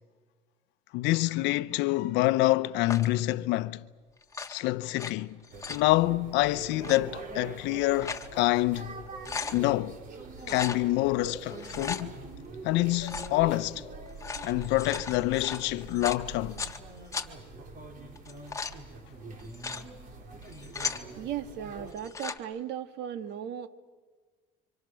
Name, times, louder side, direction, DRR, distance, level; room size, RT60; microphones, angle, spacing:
voice 1, 0.9-3.8 4.5-5.4 5.7-9.0 9.5-10.0 10.5-12.1 12.6-13.8 14.4-16.6 20.8-21.0, left 18 dB, 80° left, 0.8 m, -27 dB
sound 1, 2.9-3.2 4.2-5.1 5.4-5.9 6.7-7.0 7.7-8.3 8.7-8.8 9.1-9.6 10.4-10.8 11.5-12.0 13.0-13.4 14.1-16.8 17.1-17.3 18.2-18.8 19.4-19.8 20.4-21.0 21.9-22.4, left 4 dB, 15° left, 1.4 m, -37 dB
sound 2, 5.5-21.9, right 3 dB, 50° right, 3.8 m, -44 dB
voice 2, 21.2-23.7, right 10 dB, 70° right, 1.5 m, -36 dB
29.0 x 25.0 x 6.3 m
cardioid pair, 125°, 18 cm